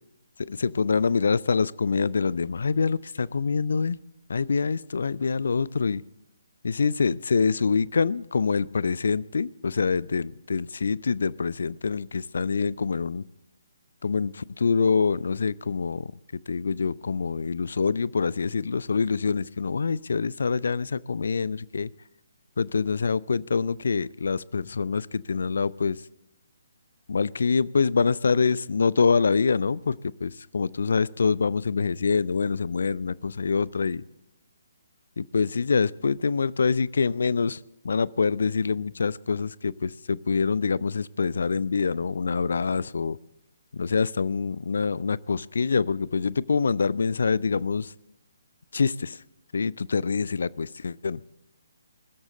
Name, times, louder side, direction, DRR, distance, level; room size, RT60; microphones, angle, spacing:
voice 1, 0.5-4.0 4.3-6.0 6.6-13.2 14.0-16.1 16.5-21.9 22.6-26.0 27.1-34.0 35.2-37.6 37.8-43.2 43.7-47.9 48.7-49.2 49.5-51.2, left 5 dB, 60° left, 22 dB, 0.5 m, -25 dB
21.0 x 13.5 x 4.0 m, 0.90 s
figure-of-eight pair, 135°, 0 cm